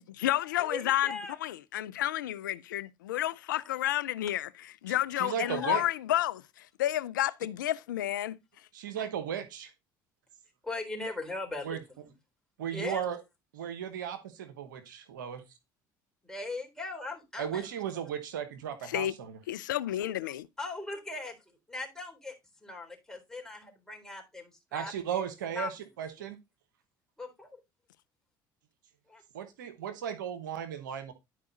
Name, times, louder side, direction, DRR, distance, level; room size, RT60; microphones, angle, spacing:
voice 1, 0.0-1.1 1.4-4.5 4.8-8.4 18.8-19.1 19.5-20.5, left 13 dB, 90° left, 0.5 m, -31 dB
voice 2, 0.6-1.4 3.5-3.8 5.4-5.9 10.6-12.1 12.7-13.1 16.2-17.7 20.3-22.4 22.6-25.2 25.5-25.7 26.2-26.3 27.2-27.6 29.1-29.2, left 3 dB, 5° left, 3.7 m, -40 dB
voice 3, 4.9-5.8 8.7-9.7 11.6-11.8 12.6-13.2 13.5-15.4 17.4-19.3 24.7-25.7 26.0-26.4 29.3-31.1, right 9 dB, 90° right, 1.1 m, -35 dB
11.0 x 4.7 x 4.0 m
hypercardioid pair, 70°, 10 cm